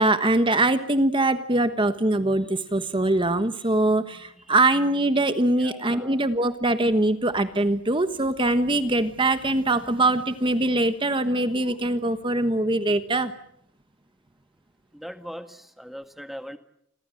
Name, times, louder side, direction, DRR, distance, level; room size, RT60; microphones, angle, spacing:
voice 1, 0.0-13.3, right 2 dB, 25° right, 10 dB, 1.2 m, -22 dB
voice 2, 5.5-6.2 14.9-16.6, equal, ahead, 8 dB, 1.7 m, -40 dB
29.0 x 22.5 x 7.7 m, 0.72 s
head